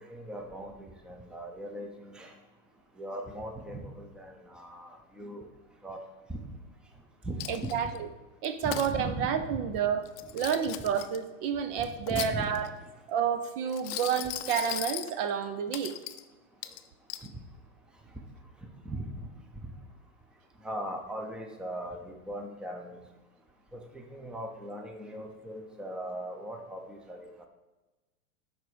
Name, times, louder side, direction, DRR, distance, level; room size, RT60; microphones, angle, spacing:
voice 1, 0.1-2.3 3.0-5.4 5.8-6.0 6.3-6.4 7.2-7.7 8.6-9.7 11.8-12.4 18.8-19.0 20.6-23.0 23.7-27.5, right 1 dB, ahead, 3 dB, 0.6 m, -39 dB
Coin (dropping), 7.4-8.0 8.4-8.9 10.1-11.2 11.8-12.8 13.7-15.1 15.7-16.2 16.6-17.3, left 15 dB, 45° left, 0.6 m, -38 dB
voice 2, 7.5-8.1 8.4-10.0 10.3-12.7 13.1-16.0, right 8 dB, 45° right, 10 dB, 0.6 m, -30 dB
10.5 x 4.0 x 5.0 m, 1.1 s
hypercardioid pair, 120°, 41 cm